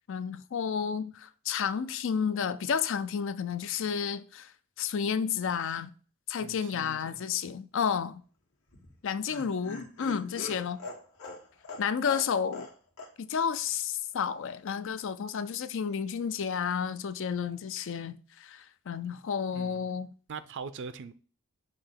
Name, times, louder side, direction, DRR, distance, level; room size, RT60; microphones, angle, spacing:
voice 1, 0.1-4.5 4.8-5.9 6.3-8.2 9.0-10.8 11.8-12.7 13.2-20.1, left 7 dB, 60° left, 0.4 m, -31 dB
voice 2, 6.4-7.2 12.0-12.1 19.5-19.9 20.3-21.1, right 5 dB, 55° right, 0.5 m, -42 dB
Laughter, 8.7-12.7 13.0-13.1 13.4-13.5, left 2 dB, 80° left, 1.7 m, -42 dB
6.7 x 2.9 x 5.7 m
head